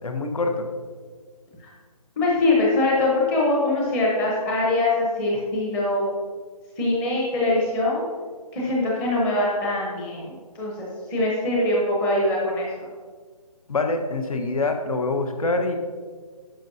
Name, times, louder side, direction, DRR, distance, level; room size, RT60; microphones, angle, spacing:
voice 1, 0.0-0.6 13.7-15.8, left 3 dB, 65° left, 5 dB, 1.2 m, -25 dB
voice 2, 2.2-6.1 6.8-8.0 8.5-12.9, left 2 dB, 5° left, -4 dB, 0.8 m, -23 dB
10.0 x 6.5 x 2.7 m, 1.5 s
hypercardioid pair, 165°, 20 cm